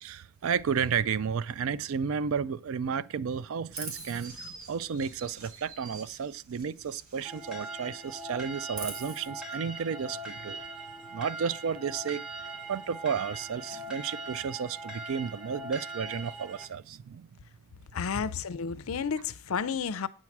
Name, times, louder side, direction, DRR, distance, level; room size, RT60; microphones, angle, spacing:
voice 1, 0.0-10.6 11.1-12.3 12.7-17.3, right 6 dB, 65° right, 0.4 m, -32 dB
Chirp tweet, 3.7-7.7 8.0-9.3, right 3 dB, 85° right, 2.5 m, -44 dB
sound 1, 7.2-16.7, right 2 dB, 5° right, 1.0 m, -41 dB
voice 2, 17.9-20.1, left 6 dB, 70° left, 0.5 m, -31 dB
8.6 x 4.6 x 7.1 m
head